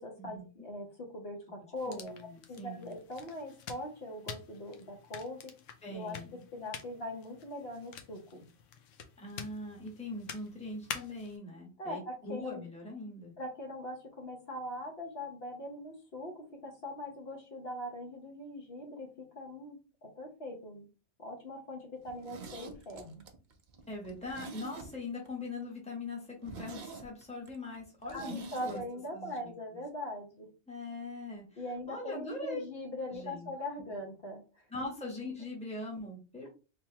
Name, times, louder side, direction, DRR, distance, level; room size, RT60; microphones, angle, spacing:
voice 1, 0.0-2.1 2.5-5.5 5.9-8.5 11.8-12.6 13.4-20.9 21.2-23.2 28.1-30.5 31.6-34.7, left 1 dB, 55° left, 0 dB, 1.0 m, -41 dB
voice 2, 1.6-2.9 5.8-6.4 9.2-13.3 23.9-28.8 29.1-29.8 30.7-32.6 33.1-33.5 33.8-33.9 34.7-36.5, left 2 dB, 5° left, -1 dB, 1.0 m, -42 dB
sound 1, 1.8-11.4, left 7 dB, 80° left, 1.0 m, -48 dB
Zipper (clothing), 22.0-25.3 25.6-25.7 26.0-26.1 26.4-28.8 29.1-29.2, right 4 dB, 55° right, 0.6 m, -47 dB
3.6 x 2.9 x 2.8 m, 0.33 s
omnidirectional pair, 1.3 m